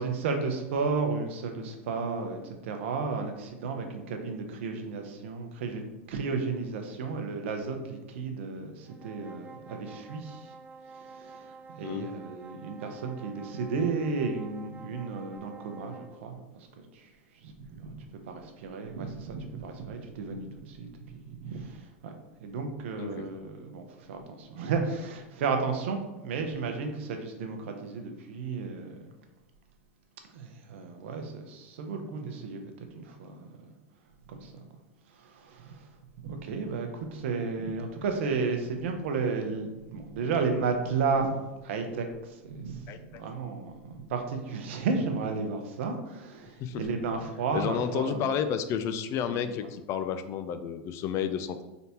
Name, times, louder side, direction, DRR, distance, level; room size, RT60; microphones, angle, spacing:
voice 1, 0.0-10.5 10.9-22.1 22.4-29.1 30.2-33.7 34.3-34.6 35.1-35.9 36.2-48.4 49.3-49.5, right 4 dB, 70° right, 5 dB, 0.7 m, -33 dB
sound 1, 8.8-16.2, right 4 dB, 25° right, 0.5 m, -49 dB
voice 2, 23.0-23.3 42.9-43.2 46.6-46.8 47.5-51.6, left 8 dB, 45° left, 9 dB, 0.4 m, -31 dB
3.9 x 3.4 x 2.8 m, 1.0 s
hypercardioid pair, 100°, 7 cm